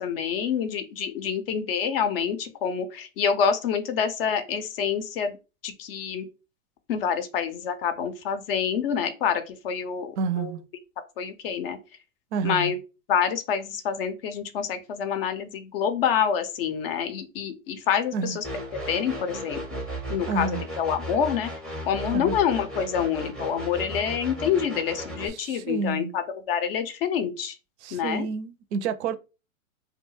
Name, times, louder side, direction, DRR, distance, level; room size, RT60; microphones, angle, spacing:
voice 1, 0.0-5.3 5.6-6.3 6.9-10.5 11.2-11.8 12.4-12.8 13.1-18.4 18.9-19.8 20.1-21.5 21.9-27.6 27.9-28.3, left 7 dB, 45° left, 0.5 m, -27 dB
voice 2, 10.2-10.6 12.3-12.7 18.1-18.4 20.3-20.6 22.1-22.4 25.3-26.1 27.8-29.2, right 5 dB, 55° right, 0.5 m, -29 dB
sound 1, 18.4-25.3, equal, ahead, 0.5 m, -35 dB
2.3 x 2.2 x 3.0 m
hypercardioid pair, 120°, 41 cm